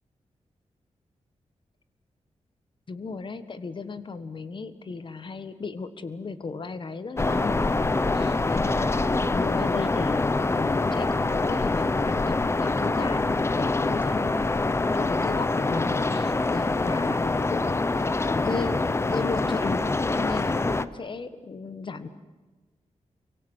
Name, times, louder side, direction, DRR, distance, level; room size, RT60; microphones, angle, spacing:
voice 1, 2.9-14.6 14.9-18.8 19.1-22.1, left 4 dB, 45° left, 12 dB, 1.5 m, -35 dB
sound 1, 7.2-20.9, left 3 dB, 20° left, 0.8 m, -25 dB
28.0 x 24.0 x 8.2 m, 1.3 s
wide cardioid pair, 150°, 12 cm